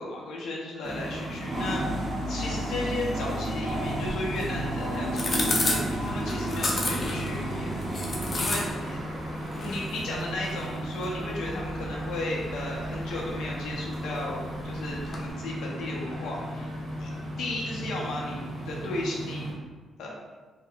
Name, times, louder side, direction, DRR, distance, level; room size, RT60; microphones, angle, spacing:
voice 1, 0.0-7.7 8.4-9.0 9.5-17.1 17.4-19.4 20.0-20.1, left 2 dB, 90° left, -3 dB, 0.7 m, -35 dB
sound 1, 0.8-19.5, right 1 dB, 35° right, 0.9 m, -33 dB
sound 2, 3.7-15.3, left 2 dB, 30° left, 0.5 m, -35 dB
3.2 x 2.1 x 3.8 m, 1.3 s
cardioid pair, 150°, 0 cm